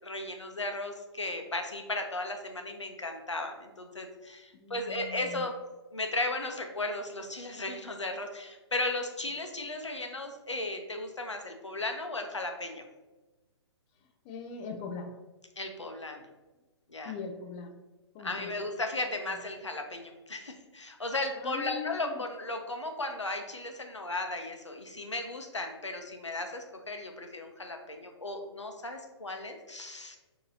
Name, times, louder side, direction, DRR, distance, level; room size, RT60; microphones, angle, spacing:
voice 1, 0.0-5.5 5.9-12.8 15.6-16.3 16.9-17.1 18.2-30.2, left 2 dB, 90° left, 4 dB, 0.7 m, -36 dB
voice 2, 4.5-5.5 14.0-15.2 17.0-17.8 18.1-18.5 21.3-22.2, left 5 dB, 25° left, 4 dB, 0.4 m, -41 dB
6.0 x 2.9 x 2.7 m, 1.1 s
figure-of-eight pair, 130°, 15 cm